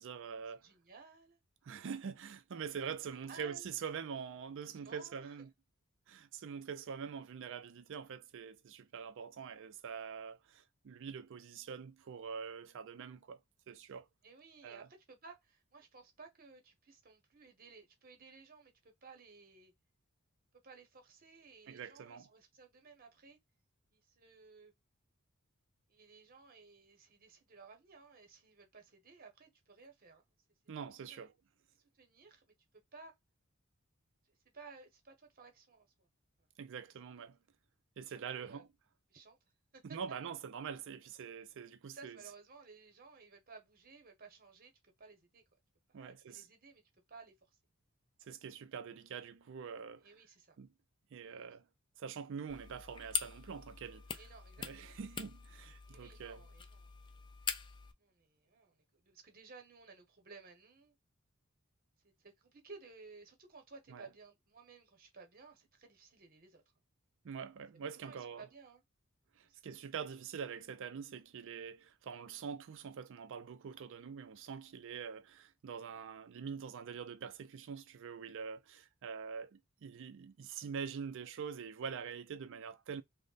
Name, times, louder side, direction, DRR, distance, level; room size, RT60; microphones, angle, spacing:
voice 1, 0.0-0.7 1.6-5.5 6.1-13.4 13.7-14.1 14.6-14.9 21.7-22.3 30.7-31.3 36.6-37.4 38.0-38.7 39.8-42.2 45.9-46.5 48.2-50.1 50.6-50.7 51.1-51.6 52.0-54.2 54.6-56.4 63.9-64.1 67.2-68.4 69.4-83.0, right 6 dB, 60° right, 0.4 m, -45 dB
voice 2, 0.6-1.4 3.3-3.8 4.6-5.5 14.2-19.7 20.6-23.4 23.9-24.7 25.9-30.2 31.1-31.3 31.9-32.5 32.7-33.1 34.5-36.1 38.1-38.7 39.1-39.4 39.7-40.0 41.9-45.4 45.9-46.8 47.1-47.3 50.0-50.6 51.2-51.5 54.2-54.9 55.8-57.3 58.0-61.0 62.0-66.6 68.0-68.8 69.4-69.6, right 4 dB, 45° right, 0.9 m, -57 dB
sound 1, 52.5-57.9, left 6 dB, 20° left, 0.4 m, -43 dB
3.1 x 2.1 x 3.9 m
head